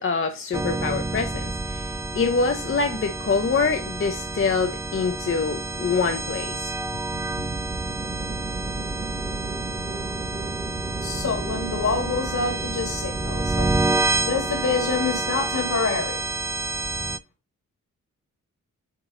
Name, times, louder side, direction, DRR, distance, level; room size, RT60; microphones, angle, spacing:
voice 1, 0.0-6.7, left 4 dB, 40° left, 0.8 m, -25 dB
sound 1, 0.5-17.2, right 2 dB, 10° right, 0.4 m, -29 dB
sound 2, 7.1-17.0, right 3 dB, 45° right, 1.9 m, -38 dB
voice 2, 11.0-13.7 14.3-16.3, left 5 dB, 65° left, 2.8 m, -27 dB
8.2 x 3.0 x 3.8 m
cardioid pair, 65°, 32 cm